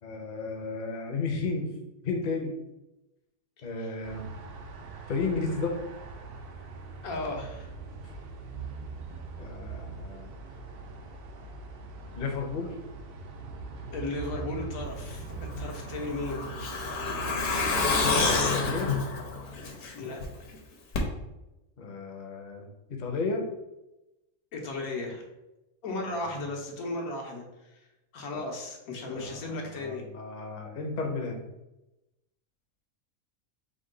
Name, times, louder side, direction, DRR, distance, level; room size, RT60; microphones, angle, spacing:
voice 1, 0.0-1.7 2.0-2.5 3.6-4.3 5.1-5.8 9.4-10.3 12.2-12.7 18.0-18.9 21.8-23.4 26.0-26.2 29.1-31.4, left 4 dB, 45° left, 2 dB, 0.6 m, -33 dB
sound 1, 4.0-19.0, right 4 dB, 65° right, 0.6 m, -42 dB
voice 2, 7.0-7.7 13.9-16.5 19.9-20.2 24.5-25.2 25.8-27.8 28.1-30.1, left 2 dB, 85° left, 1 dB, 1.3 m, -35 dB
Truck, 15.5-20.2 20.5-20.6 20.9-21.0, left 4 dB, 65° left, 1.1 m, -28 dB
5.0 x 2.2 x 3.8 m, 0.96 s
omnidirectional pair, 1.5 m